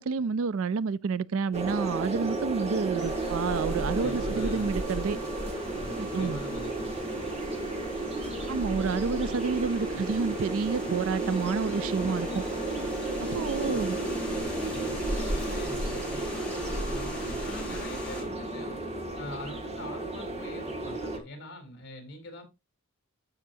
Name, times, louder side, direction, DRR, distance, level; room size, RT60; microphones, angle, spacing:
voice 1, 0.0-5.2 6.0-6.4 8.5-12.4 13.2-14.0, right 5 dB, 65° right, 0.4 m, -29 dB
Helicopter landing, 1.5-21.2, right 2 dB, 30° right, 1.9 m, -33 dB
sound 1, 3.0-18.2, equal, 5° left, 3.7 m, -39 dB
voice 2, 4.0-4.8 5.7-7.3 13.6-18.8 19.2-22.4, left 1 dB, 50° left, 3.7 m, -44 dB
13.5 x 5.8 x 2.7 m
head